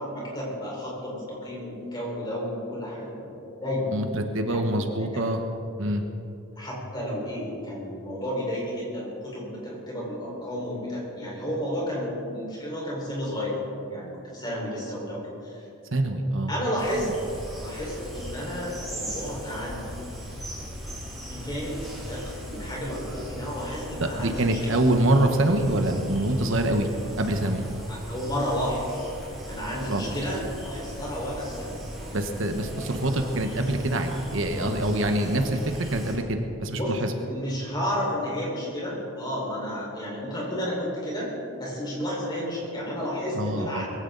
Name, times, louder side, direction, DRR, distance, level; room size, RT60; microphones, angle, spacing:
voice 1, 0.0-3.3 3.6-3.9 4.4-5.3 6.6-13.6 13.9-15.6 16.5-17.1 17.6-19.8 21.3-24.7 27.9-29.1 29.4-31.7 36.7-36.9 37.2-41.3 41.6-43.8, equal, 20° left, -4 dB, 4.8 m, -32 dB
voice 2, 3.9-5.4 5.8-6.0 15.9-16.5 24.0-26.9 27.2-27.6 29.9-30.0 32.1-37.1 43.3-43.8, right 1 dB, 65° right, 5 dB, 1.2 m, -25 dB
sound 1, 16.8-36.1, equal, ahead, 4.9 m, -38 dB
21.5 x 16.0 x 4.0 m, 2.7 s
head